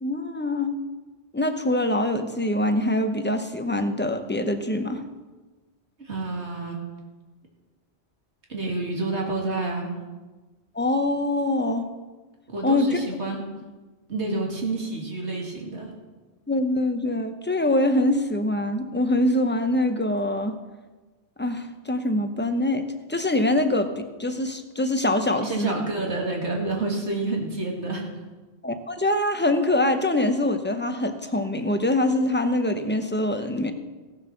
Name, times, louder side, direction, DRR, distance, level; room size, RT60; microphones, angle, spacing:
voice 1, 0.0-0.8 1.3-5.0 10.7-11.9 12.6-13.0 14.1-14.3 16.5-20.6 21.4-25.9 28.6-33.7, left 1 dB, 10° left, 7 dB, 0.7 m, -24 dB
voice 2, 6.0-6.8 8.5-9.9 12.5-13.4 14.1-15.9 25.4-28.1, right 2 dB, 75° right, 0 dB, 2.5 m, -29 dB
16.5 x 7.4 x 5.9 m, 1.3 s
omnidirectional pair, 1.2 m